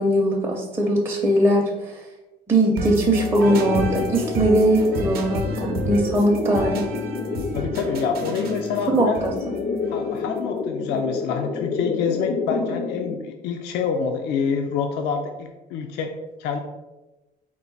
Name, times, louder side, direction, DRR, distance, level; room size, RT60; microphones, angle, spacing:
voice 1, 0.0-2.0 2.5-6.9 8.9-9.3, right 1 dB, 15° right, -3 dB, 0.6 m, -20 dB
sound 1, 2.8-10.6, right 1 dB, 65° right, 0.7 m, -32 dB
sound 2, 3.2-13.2, left 4 dB, 30° left, 0.4 m, -29 dB
voice 2, 7.5-9.2 9.9-16.1 16.4-16.6, left 6 dB, 90° left, 4 dB, 0.4 m, -27 dB
4.5 x 2.2 x 3.9 m, 1.1 s
cardioid pair, 110°, 17 cm